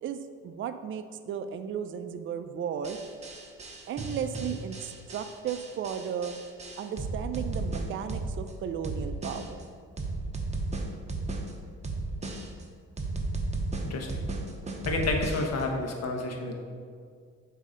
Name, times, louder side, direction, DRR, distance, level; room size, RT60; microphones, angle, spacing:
voice 1, 0.0-3.0 3.9-6.3 6.8-9.6, right 8 dB, 45° right, 9 dB, 0.4 m, -35 dB
sound 1, 2.8-8.5 8.8-9.6 10.0-11.5 11.8-12.6 13.0-15.6, right 2 dB, 20° right, 0.8 m, -34 dB
voice 2, 14.9-16.6, left 2 dB, 55° left, 2 dB, 1.0 m, -30 dB
7.2 x 2.8 x 5.0 m, 2.1 s
cardioid pair, 90°, 30 cm